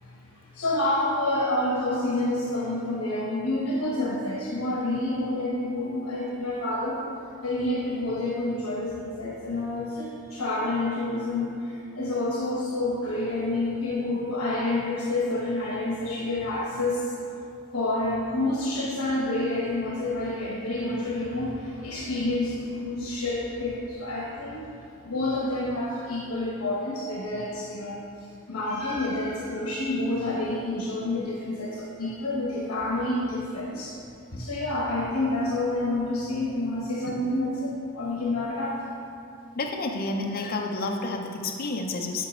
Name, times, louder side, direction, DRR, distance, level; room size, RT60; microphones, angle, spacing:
voice 1, 0.0-7.0 7.4-17.1 17.7-24.7 25.0-28.0 28.5-33.9 34.3-38.9, left 2 dB, 80° left, -4 dB, 1.0 m, -28 dB
voice 2, 39.5-42.3, left 2 dB, 45° left, 2 dB, 0.5 m, -30 dB
8.2 x 4.9 x 4.3 m, 2.6 s
head